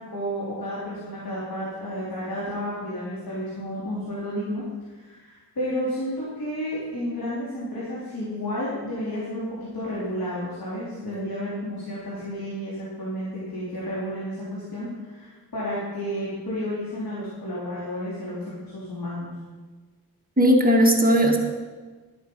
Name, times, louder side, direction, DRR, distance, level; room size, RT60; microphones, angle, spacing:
voice 1, 0.1-4.6 4.9-19.3, equal, 70° left, -8 dB, 3.6 m, -31 dB
voice 2, 20.4-21.4, equal, 25° right, 1 dB, 1.6 m, -17 dB
13.0 x 8.7 x 5.3 m, 1.4 s
wide cardioid pair, 75°, 37 cm